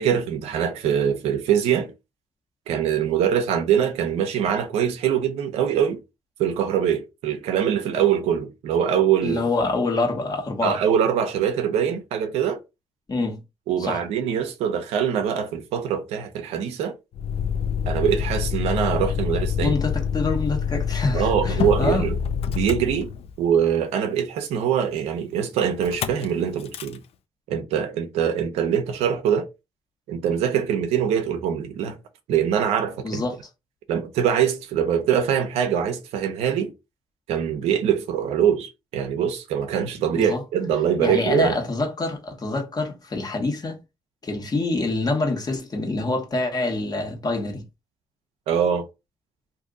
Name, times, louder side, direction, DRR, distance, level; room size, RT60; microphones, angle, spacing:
voice 1, 0.0-1.9 2.7-6.0 6.4-9.4 10.6-12.6 13.7-16.9 17.9-19.8 21.1-22.2 22.5-23.1 23.4-27.0 27.5-29.5 30.1-32.0 32.3-33.2 33.9-36.7 37.3-41.6 48.5-48.9, right 8 dB, 85° right, 0.6 m, -23 dB
voice 2, 9.2-10.8 13.1-13.4 13.8-14.0 19.6-22.1 33.0-33.4 40.1-40.4 41.0-43.8 44.2-47.6, left 2 dB, 40° left, 1.2 m, -26 dB
Motor vehicle (road), 17.1-23.6 25.8-26.3 26.6-27.0, left 7 dB, 70° left, 0.4 m, -26 dB
2.6 x 2.5 x 3.7 m
supercardioid pair, 60°, 10 cm